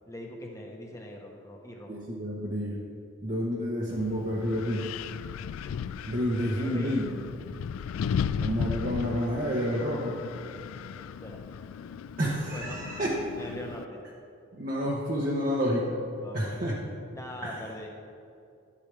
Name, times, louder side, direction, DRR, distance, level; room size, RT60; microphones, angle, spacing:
voice 1, 0.1-2.1 6.4-7.1 11.2-11.4 12.5-12.9 13.4-14.0 16.2-16.6 17.1-17.9, left 1 dB, 15° left, 0 dB, 1.0 m, -42 dB
voice 2, 1.9-2.8 3.2-4.9 6.1-7.1 8.4-10.2 12.2-13.2 14.5-15.9 16.3-16.8 17.4-17.7, equal, 40° right, -5 dB, 0.9 m, -29 dB
Wind, 3.9-13.8, left 7 dB, 90° left, 0.3 m, -36 dB
11.0 x 8.5 x 3.4 m, 2.4 s
head